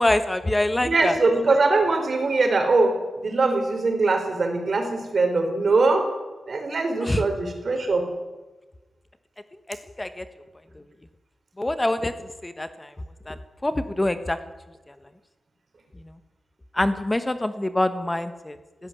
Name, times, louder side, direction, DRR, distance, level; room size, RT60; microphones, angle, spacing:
voice 1, 0.0-1.2 7.0-7.2 10.0-10.2 11.6-12.1 12.4-12.9 13.3-13.4 13.6-14.4 16.7-18.6, left 1 dB, 20° left, 10 dB, 1.2 m, -24 dB
voice 2, 0.8-6.1 6.5-8.1, right 3 dB, 55° right, 4 dB, 4.9 m, -22 dB
17.0 x 16.0 x 9.7 m, 1.2 s
wide cardioid pair, 110°, 0 cm